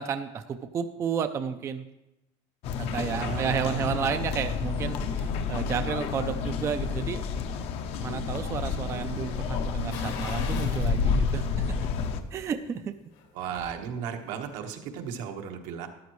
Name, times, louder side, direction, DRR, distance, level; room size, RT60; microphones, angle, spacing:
voice 1, 0.0-1.9 2.8-7.2 8.0-11.7 12.3-12.9, right 7 dB, 25° right, 9 dB, 0.4 m, -32 dB
sound 1, 2.6-12.2, left 5 dB, 55° left, 0.7 m, -30 dB
voice 2, 3.1-3.8 13.3-15.9, right 7 dB, 80° right, 4 dB, 1.3 m, -35 dB
sound 2, 9.9-11.0 11.4-11.5 13.0-13.8 14.1-14.2, left 6 dB, 80° left, 2.0 m, -40 dB
13.5 x 11.0 x 3.1 m, 0.89 s
cardioid pair, 175°, 12 cm